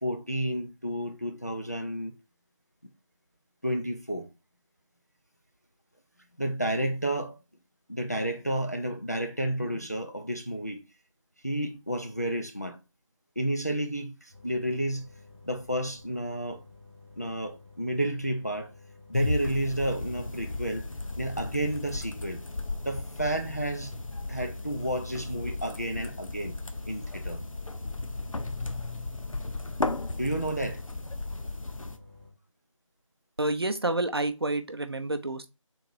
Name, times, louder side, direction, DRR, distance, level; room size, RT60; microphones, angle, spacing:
voice 1, 0.0-2.1 3.6-4.3 6.4-7.4 7.9-10.8 11.4-12.8 13.4-15.1 15.4-16.6 17.2-18.7 19.1-20.9 21.2-22.4 22.8-23.9 24.3-26.6 26.9-27.4 30.1-30.8, right 1 dB, 30° left, 0.4 m, -31 dB
sound 1, 14.3-32.3, left 3 dB, ahead, 0.9 m, -52 dB
sound 2, 19.1-32.0, left 2 dB, 75° left, 0.6 m, -35 dB
voice 2, 33.4-35.5, right 2 dB, 50° right, 0.5 m, -29 dB
3.8 x 2.8 x 4.5 m
figure-of-eight pair, 165°, 17 cm